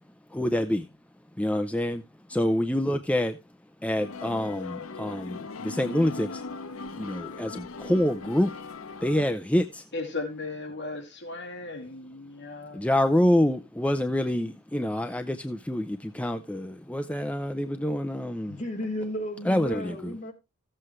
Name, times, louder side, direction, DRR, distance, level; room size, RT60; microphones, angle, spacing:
voice 1, 0.3-0.8 1.4-2.0 2.3-3.4 3.8-6.4 6.9-8.5 9.0-9.8 12.7-18.6 19.5-20.2, left 1 dB, 5° left, 0.5 m, -26 dB
sound 1, 4.0-9.3, left 4 dB, 75° left, 0.8 m, -39 dB
voice 2, 9.9-12.9, left 3 dB, 55° left, 2.5 m, -36 dB
voice 3, 18.5-20.3, equal, 35° left, 4.7 m, -34 dB
15.0 x 7.7 x 3.1 m
head